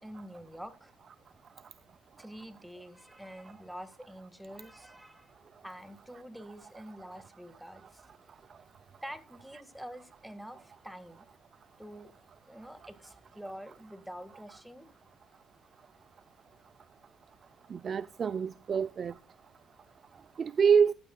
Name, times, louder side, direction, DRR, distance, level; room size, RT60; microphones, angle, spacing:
voice 1, 0.0-0.9 2.2-5.3 5.6-8.0 9.0-11.3 11.8-12.1 12.5-14.9, equal, 5° right, 1.8 m, -46 dB
voice 2, 17.7-19.1 20.4-20.9, right 6 dB, 45° right, 0.4 m, -26 dB
15.0 x 11.5 x 2.3 m
cardioid pair, 95°, 0 cm